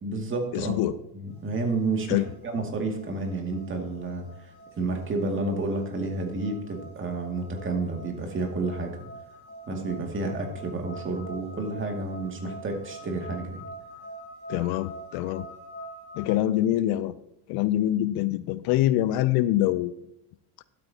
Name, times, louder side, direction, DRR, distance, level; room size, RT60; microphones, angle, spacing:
voice 1, 0.0-0.8 1.1-9.0 9.7-13.6, right 3 dB, 30° right, 2 dB, 2.2 m, -30 dB
voice 2, 0.5-1.0 2.1-2.3 14.5-15.5 16.2-17.1 17.5-19.9, left 14 dB, 60° left, 16 dB, 0.6 m, -25 dB
sound 1, 1.3-16.3, right 1 dB, 15° left, 3.3 m, -46 dB
12.0 x 8.5 x 2.8 m, 0.86 s
supercardioid pair, 115°, 42 cm